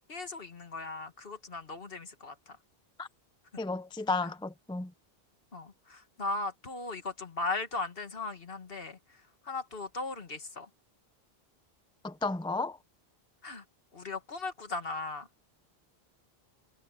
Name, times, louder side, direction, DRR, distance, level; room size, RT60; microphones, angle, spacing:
voice 1, 0.1-2.6 4.2-4.3 5.5-9.2 9.4-10.7 13.4-13.6 13.9-15.3, left 3 dB, 65° left, 2.0 m, -38 dB
voice 2, 3.6-4.9 12.0-12.8, left 3 dB, 5° left, 0.4 m, -33 dB
omnidirectional pair, 1.1 m